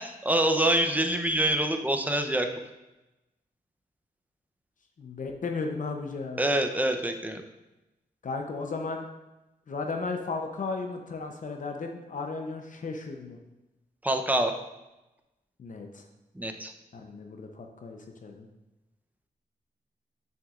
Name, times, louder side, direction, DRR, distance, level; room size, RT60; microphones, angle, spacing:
voice 1, 0.0-2.5 6.4-7.4 14.0-14.5 16.4-16.7, right 1 dB, 10° right, 6 dB, 0.7 m, -25 dB
voice 2, 5.0-6.5 8.2-9.1 9.7-13.4 15.6-16.0 16.9-18.5, left 4 dB, 50° left, 3 dB, 0.7 m, -35 dB
7.1 x 6.3 x 2.5 m, 1.0 s
cardioid pair, 75°, 17 cm